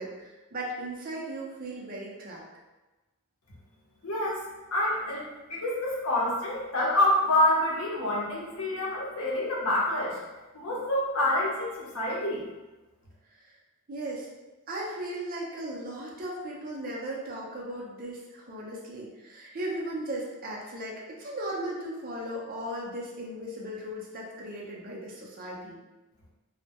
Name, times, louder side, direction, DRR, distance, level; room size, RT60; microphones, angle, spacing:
voice 1, 0.0-2.4 13.9-14.3 14.7-25.8, right 1 dB, 40° right, -3 dB, 0.5 m, -37 dB
voice 2, 4.0-5.2 5.5-10.2 10.5-12.5, left 1 dB, 75° left, -5 dB, 0.7 m, -27 dB
2.2 x 2.1 x 2.8 m, 1.1 s
head